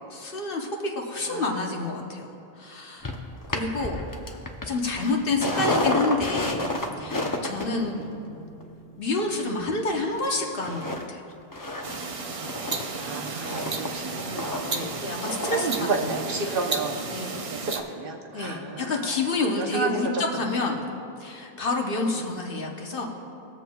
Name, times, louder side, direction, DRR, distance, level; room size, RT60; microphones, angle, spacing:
voice 1, 0.1-2.3 2.6-3.2 3.5-4.0 4.6-6.7 7.0-7.9 9.0-11.2 14.7-16.1 16.4-16.6 17.1-17.4 18.3-20.8 21.2-23.1, left 3 dB, 60° left, 1 dB, 1.2 m, -28 dB
sound 1, 3.0-10.2 10.6-11.0 11.3-15.8 16.1-16.2, left 1 dB, 25° left, 0.6 m, -31 dB
sound 2, 11.8-17.8, right 4 dB, 45° right, 0.5 m, -33 dB
voice 2, 13.0-14.7 15.5-17.0 17.5-19.2 19.6-20.0, right 4 dB, 60° right, 1 dB, 1.0 m, -31 dB
21.5 x 7.4 x 2.3 m, 2.7 s
omnidirectional pair, 1.0 m